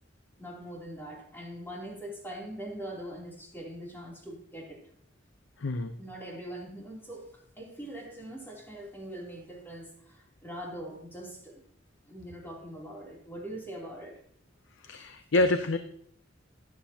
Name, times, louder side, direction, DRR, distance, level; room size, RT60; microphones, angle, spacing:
voice 1, 0.4-4.8 6.0-11.6 12.0-14.2, right 1 dB, 10° left, -3 dB, 3.0 m, -42 dB
voice 2, 5.6-5.9 14.8-15.8, left 2 dB, 85° left, 9 dB, 0.7 m, -27 dB
13.0 x 11.0 x 2.8 m, 0.68 s
head